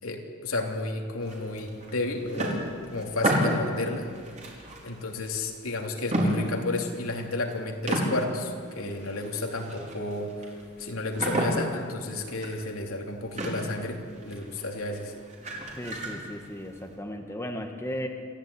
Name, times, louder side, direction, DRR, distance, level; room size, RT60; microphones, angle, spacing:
voice 1, 0.0-4.1 4.8-15.1, left 2 dB, 80° left, 2 dB, 3.1 m, -32 dB
sound 1, 1.2-5.7 6.0-7.5 7.8-16.9, right 1 dB, 35° right, 4.8 m, -33 dB
voice 2, 15.8-18.1, equal, 15° left, 3 dB, 1.7 m, -35 dB
27.0 x 15.0 x 10.0 m, 2.1 s
head